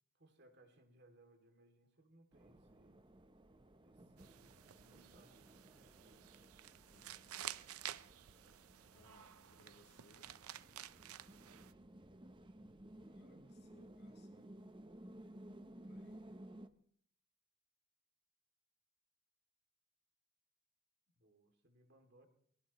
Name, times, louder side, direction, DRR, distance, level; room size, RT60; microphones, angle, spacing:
voice 1, 0.1-3.1 3.8-6.5 21.1-22.3, right 1 dB, 50° right, 2.7 m, -68 dB
sound 1, 2.3-16.7, right 1 dB, 20° right, 0.8 m, -58 dB
sound 2, 4.2-11.7, right 12 dB, 75° right, 0.6 m, -52 dB
voice 2, 6.7-7.4 8.9-10.4 13.0-14.5 15.8-16.4, left 1 dB, 50° left, 3.0 m, -68 dB
23.0 x 18.5 x 3.1 m
head